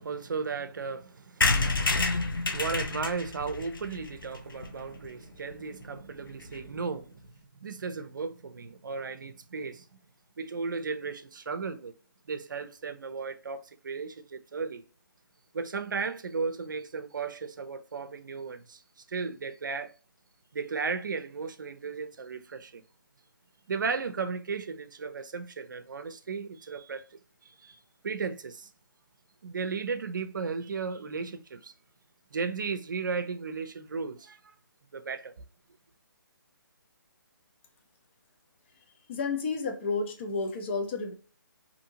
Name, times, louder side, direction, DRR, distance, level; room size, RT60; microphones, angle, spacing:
voice 1, 0.0-7.2 7.6-9.9 10.4-11.9 12.3-14.8 15.5-19.9 20.5-22.8 23.7-27.8 28.0-28.7 29.4-31.7 32.3-34.5 34.9-35.3, right 5 dB, 65° right, 0.5 m, -35 dB
sound 1, 1.4-5.1 5.5-5.6 5.8-5.9 6.1-6.2 6.4-6.7, left 3 dB, 80° left, 0.7 m, -29 dB
voice 2, 39.1-41.1, left 4 dB, 35° left, 0.6 m, -31 dB
2.8 x 2.7 x 2.7 m
figure-of-eight pair, 145°, 11 cm